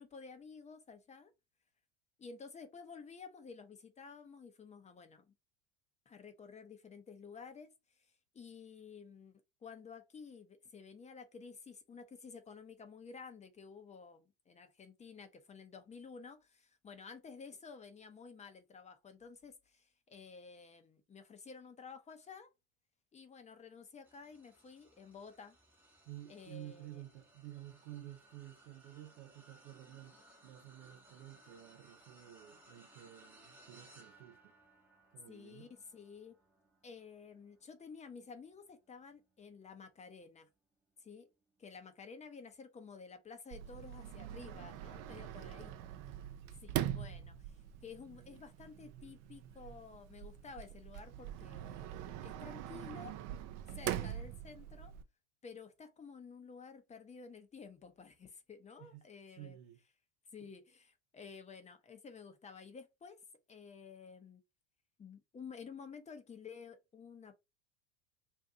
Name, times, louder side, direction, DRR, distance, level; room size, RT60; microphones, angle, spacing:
voice 1, 0.0-1.3 2.2-5.3 6.1-8.1 8.3-22.5 23.1-25.6 26.3-27.0 35.3-36.4 36.8-40.5 41.0-41.3 41.6-45.7 46.6-53.2 53.7-54.9 55.4-59.6 60.3-63.2 63.5-64.4 65.0-67.4, left 5 dB, 20° left, 0.7 m, -52 dB
sound 1, 24.0-39.6 40.1-40.3 41.6-41.7, right 1 dB, 5° right, 0.8 m, -64 dB
voice 2, 26.0-34.5 35.1-35.7 45.1-45.6 46.1-46.5 58.8-59.0 59.4-59.8, right 14 dB, 70° right, 0.8 m, -52 dB
Sliding door, 43.5-55.0, right 11 dB, 45° right, 0.5 m, -43 dB
2.7 x 2.6 x 3.5 m
hypercardioid pair, 100°, 36 cm